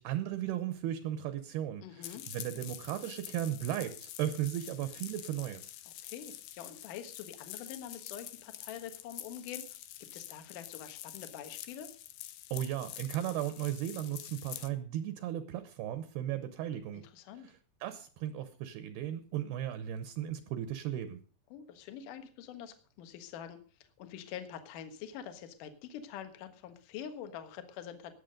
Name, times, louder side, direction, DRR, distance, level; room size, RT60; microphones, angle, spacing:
voice 1, 0.0-5.7 12.5-17.0 17.4-21.2, right 11 dB, 75° right, 11 dB, 2.4 m, -36 dB
voice 2, 1.8-2.2 6.0-9.8 10.1-11.9 17.1-17.5 21.5-23.6 24.0-28.2, left 9 dB, 60° left, 8 dB, 2.4 m, -45 dB
sound 1, 2.0-14.7, left 13 dB, 80° left, 3.1 m, -47 dB
19.5 x 7.6 x 5.2 m, 0.39 s
omnidirectional pair, 5.3 m